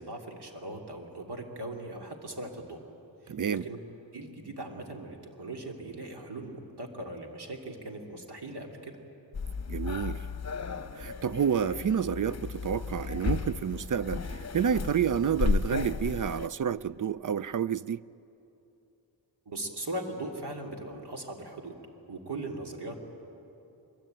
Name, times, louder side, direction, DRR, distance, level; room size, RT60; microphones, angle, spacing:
voice 1, 0.0-2.8 3.2-3.8 4.1-9.0 19.4-21.7 22.1-23.0, right 2 dB, 65° right, 3.2 m, -39 dB
voice 2, 3.3-3.6 9.7-10.2 10.9-18.0, right 8 dB, 45° right, 0.5 m, -29 dB
sound 1, 9.3-16.5, left 4 dB, 35° left, 1.0 m, -34 dB
24.0 x 22.5 x 9.1 m
wide cardioid pair, 85°, 44 cm